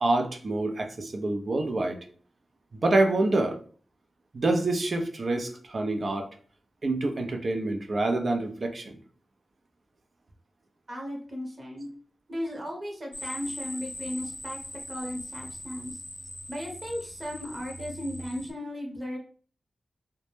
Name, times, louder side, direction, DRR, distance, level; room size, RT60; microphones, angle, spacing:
voice 1, 0.0-2.0 2.7-3.6 4.3-6.3 6.8-9.0, right 2 dB, 60° right, 4 dB, 0.5 m, -26 dB
voice 2, 10.9-11.9 12.3-14.6 14.9-15.9 16.5-19.2, equal, 45° right, 0 dB, 0.9 m, -36 dB
sound 1, 13.1-18.5, equal, 15° left, 0.3 m, -40 dB
2.1 x 2.0 x 3.0 m, 0.43 s
cardioid pair, 45°, 0 cm